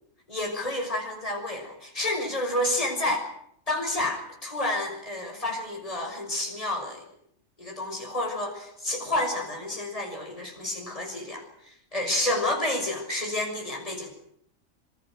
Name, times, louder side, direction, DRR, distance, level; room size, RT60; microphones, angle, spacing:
voice 1, 0.3-3.3 3.7-7.1 7.6-14.1, left 1 dB, 25° left, 2 dB, 6.2 m, -30 dB
27.0 x 25.0 x 6.5 m, 0.70 s
omnidirectional pair, 1.4 m